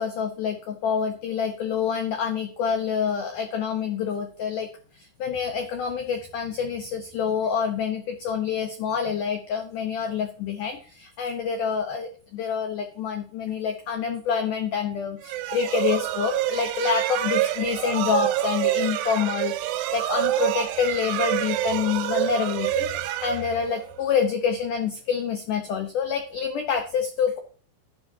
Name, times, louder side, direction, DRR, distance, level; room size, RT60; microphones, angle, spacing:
voice 1, 0.0-27.4, left 7 dB, 85° left, 6 dB, 1.8 m, -27 dB
sound 1, 15.2-24.0, right 14 dB, 80° right, 2.7 m, -27 dB
12.0 x 11.5 x 2.8 m, 0.42 s
omnidirectional pair, 5.3 m